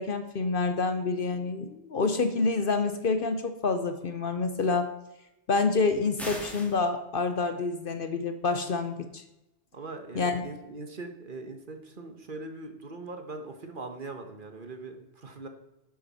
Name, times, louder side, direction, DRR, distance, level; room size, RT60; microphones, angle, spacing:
voice 1, 0.0-4.9 5.5-9.2 10.1-10.4, left 4 dB, 55° left, 9 dB, 0.9 m, -28 dB
sound 1, 6.2-6.8, equal, ahead, 2.3 m, -38 dB
voice 2, 9.7-15.5, right 3 dB, 45° right, 6 dB, 1.3 m, -41 dB
11.0 x 7.7 x 4.2 m, 0.92 s
omnidirectional pair, 1.2 m